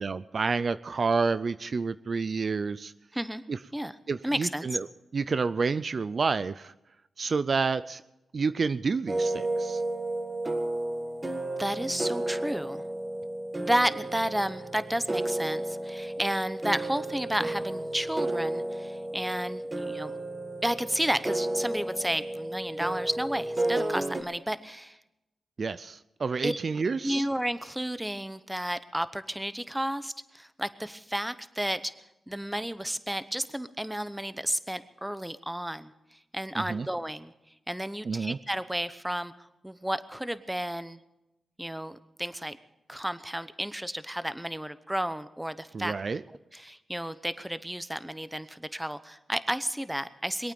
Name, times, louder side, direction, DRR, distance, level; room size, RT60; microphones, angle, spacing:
voice 1, 0.0-2.9 3.5-3.6 4.1-4.9 5.1-6.7 7.2-8.0 8.3-9.8 25.6-27.2 36.7-36.9 38.0-38.4 45.7-46.2, right 4 dB, 55° right, 14 dB, 0.4 m, -29 dB
voice 2, 3.1-3.4 3.7-3.9 4.2-4.7 11.6-12.8 13.6-20.2 20.6-25.0 26.4-26.6 27.0-31.9 32.3-37.3 37.7-41.0 41.6-42.6 42.9-45.9 46.5-50.5, right 1 dB, 5° right, 13 dB, 0.9 m, -32 dB
sound 1, 9.1-24.2, right 1 dB, 25° right, 1.7 m, -32 dB
22.5 x 8.9 x 7.0 m, 0.93 s
cardioid pair, 60°, 0 cm